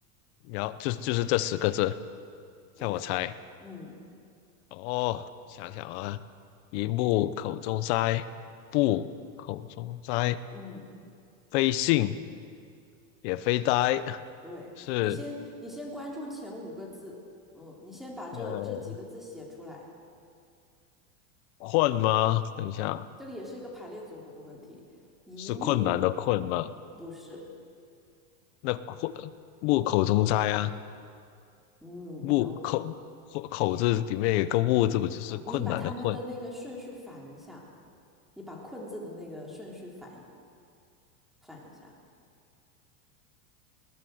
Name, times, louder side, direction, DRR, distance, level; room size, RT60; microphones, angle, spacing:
voice 1, 0.5-1.9 2.8-3.3 4.7-6.2 6.7-8.2 8.7-9.1 9.4-10.4 11.5-12.2 13.2-14.2 14.9-15.2 18.4-18.8 21.6-23.1 25.4-26.7 28.6-29.3 29.6-30.7 32.2-32.9 33.3-36.2, left 15 dB, 50° left, 14 dB, 1.0 m, -27 dB
voice 2, 3.6-4.0 10.5-10.9 14.4-17.2 17.5-19.8 23.2-24.8 25.3-26.0 26.9-27.5 31.8-32.7 35.3-37.6 38.4-40.2 41.4-41.9, left 1 dB, ahead, -3 dB, 3.6 m, -41 dB
20.5 x 19.0 x 7.9 m, 2.3 s
supercardioid pair, 160°, 44 cm